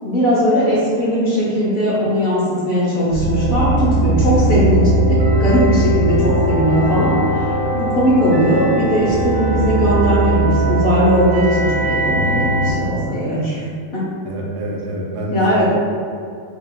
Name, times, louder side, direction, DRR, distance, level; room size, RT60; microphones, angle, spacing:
voice 1, 0.0-7.2 7.7-13.6 13.9-14.0 15.3-15.7, equal, 45° left, -8 dB, 0.9 m, -18 dB
sound 1, 3.1-12.7, right 2 dB, 60° right, 1.3 m, -18 dB
voice 2, 14.2-15.7, right 1 dB, 90° right, -2 dB, 1.2 m, -26 dB
4.7 x 3.4 x 2.3 m, 2.3 s
omnidirectional pair, 1.7 m